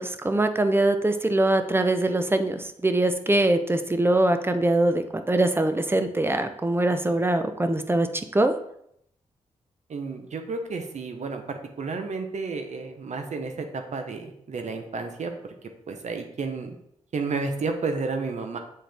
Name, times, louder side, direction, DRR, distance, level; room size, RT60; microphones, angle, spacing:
voice 1, 0.0-8.6, right 2 dB, 20° right, 8 dB, 0.7 m, -23 dB
voice 2, 9.9-16.7 17.1-18.6, right 4 dB, 65° right, 6 dB, 0.9 m, -32 dB
7.6 x 3.8 x 3.5 m, 0.73 s
cardioid pair, 55°, 13 cm